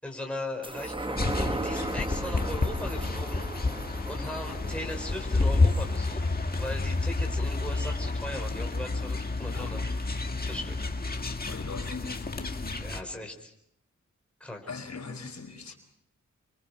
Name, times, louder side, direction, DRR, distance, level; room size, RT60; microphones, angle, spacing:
voice 1, 0.0-3.5 4.1-9.8 10.5-10.8 12.8-13.5 14.4-14.7 15.7-15.8, left 1 dB, 5° left, 1 dB, 4.9 m, -38 dB
sound 1, 0.6-7.4 7.8-7.9, right 2 dB, 15° right, 1.0 m, -37 dB
sound 2, 1.2-13.0, left 3 dB, 30° left, 1.6 m, -30 dB
voice 2, 9.4-9.9 11.4-12.8 14.7-15.7, left 4 dB, 65° left, 4 dB, 4.9 m, -41 dB
29.0 x 24.5 x 5.7 m, 0.72 s
wide cardioid pair, 135°, 30 cm